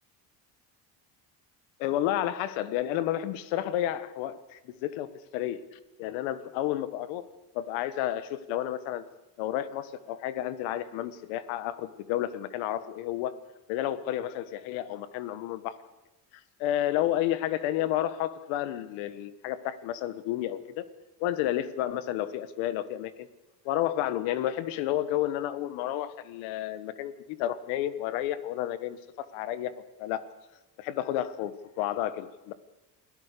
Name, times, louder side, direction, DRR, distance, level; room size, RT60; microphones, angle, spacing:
voice 1, 1.8-7.2 7.6-9.0 9.4-13.3 13.7-15.7 16.6-20.9 21.2-23.3 23.7-29.7 30.0-30.2 30.8-32.5, left 12 dB, 80° left, 14 dB, 1.6 m, -31 dB
28.0 x 17.0 x 6.8 m, 1.0 s
supercardioid pair, 85°, 46 cm